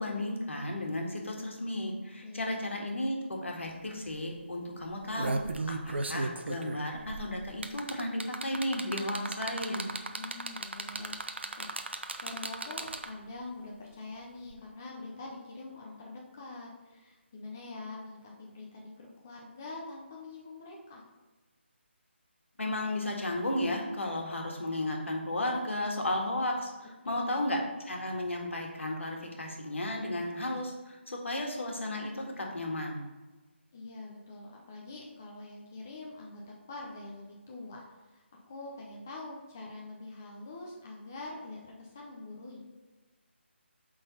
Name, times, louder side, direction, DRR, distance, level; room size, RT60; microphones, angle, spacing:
voice 1, 0.0-5.4 5.7-9.9 22.6-27.6 27.9-33.0, left 1 dB, 80° left, 1 dB, 1.7 m, -34 dB
sound 1, 3.7-3.8 4.1-4.3 4.9-13.3 14.5-14.6, right 3 dB, 65° right, 0.6 m, -36 dB
voice 2, 10.1-11.2 11.5-21.0 27.1-27.4 33.7-36.4 36.7-42.6, left 2 dB, 15° left, -2 dB, 0.4 m, -45 dB
8.1 x 3.9 x 4.1 m, 1.2 s
hypercardioid pair, 180°, 7 cm